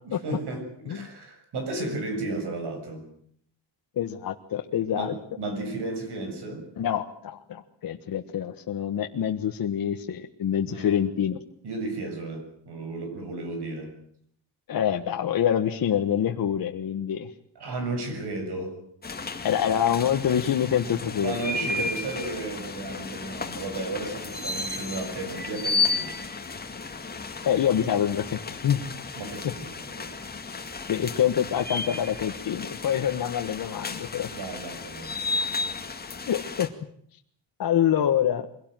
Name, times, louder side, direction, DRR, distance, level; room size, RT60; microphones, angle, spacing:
voice 1, 0.0-3.1 4.9-6.7 10.7-11.0 11.6-13.9 17.6-18.8 21.2-26.1 29.2-30.1 34.3-35.2, right 2 dB, 65° right, 6 dB, 7.3 m, -34 dB
voice 2, 4.0-5.1 6.8-11.4 14.7-17.3 19.4-21.8 27.4-28.8 30.9-34.3 36.3-36.7 37.6-38.5, left 9 dB, 50° left, 4 dB, 1.5 m, -26 dB
sound 1, 19.0-36.7, left 3 dB, 20° left, 2.1 m, -33 dB
24.0 x 17.5 x 9.2 m, 0.65 s
cardioid pair, 160°, 43 cm